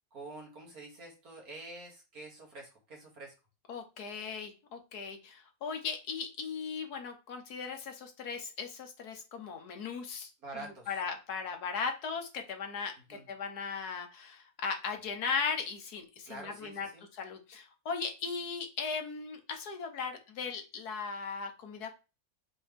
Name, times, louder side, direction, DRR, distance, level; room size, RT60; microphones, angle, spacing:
voice 1, 0.1-3.3 10.4-11.0 13.1-13.3 16.3-17.1, right 2 dB, 70° right, -1 dB, 2.9 m, -47 dB
voice 2, 3.7-10.3 10.9-16.9 17.1-21.9, left 5 dB, 85° left, 5 dB, 1.7 m, -37 dB
7.7 x 4.3 x 3.6 m, 0.29 s
omnidirectional pair, 1.6 m